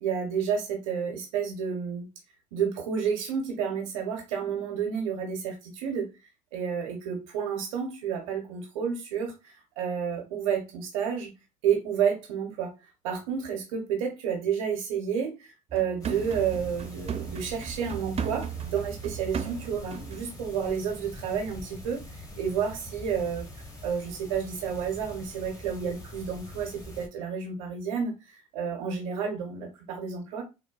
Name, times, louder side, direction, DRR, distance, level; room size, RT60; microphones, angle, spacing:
voice 1, 0.0-2.1 2.5-6.1 6.5-11.3 11.6-12.7 13.0-23.5 23.8-30.4, right 7 dB, 90° right, 0.7 m, -30 dB
sound 1, 15.7-20.3 20.6-20.8, right 8 dB, 35° right, 0.5 m, -36 dB
sound 2, 16.0-27.1, left 1 dB, 20° left, 0.9 m, -44 dB
3.4 x 2.2 x 2.2 m
hypercardioid pair, 60°, 17 cm